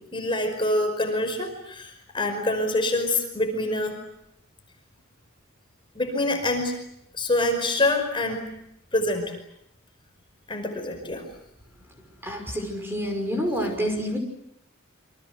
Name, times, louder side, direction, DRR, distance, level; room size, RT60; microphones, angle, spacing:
voice 1, 0.1-4.0 6.0-6.7 7.2-8.5 8.9-9.3 10.5-11.2, left 2 dB, 25° left, 4 dB, 5.3 m, -25 dB
voice 2, 12.2-14.2, equal, 10° right, 4 dB, 5.8 m, -28 dB
28.5 x 25.5 x 8.2 m, 0.78 s
head